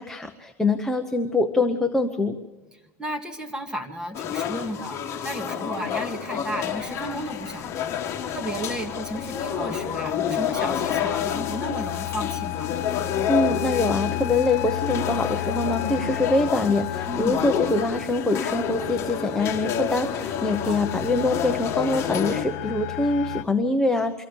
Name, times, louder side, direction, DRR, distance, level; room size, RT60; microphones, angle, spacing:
voice 1, 0.0-2.4 13.3-24.3, left 2 dB, 5° left, 6 dB, 0.8 m, -24 dB
voice 2, 3.0-7.9 8.3-12.7 17.1-17.4 20.7-20.8, equal, 10° right, 3 dB, 2.0 m, -33 dB
sound 1, 4.1-22.4, left 8 dB, 35° left, 1.8 m, -29 dB
sound 2, 6.3-23.4, left 15 dB, 70° left, 0.6 m, -34 dB
24.5 x 15.5 x 7.0 m, 1.2 s
supercardioid pair, 145°, 8 cm